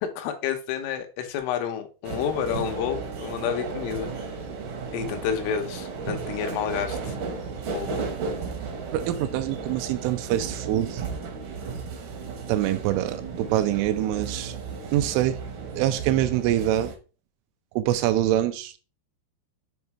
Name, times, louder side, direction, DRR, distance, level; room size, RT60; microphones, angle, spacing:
voice 1, 0.0-4.1 4.9-7.2 7.7-8.0, left 8 dB, 80° left, 3.5 m, -29 dB
sound 1, 2.0-17.0, right 5 dB, 70° right, 2.0 m, -34 dB
voice 2, 8.9-11.0 12.5-14.5 14.9-15.4 15.7-16.9 17.8-18.8, right 12 dB, 85° right, 3.0 m, -25 dB
7.9 x 3.2 x 4.6 m
omnidirectional pair, 5.7 m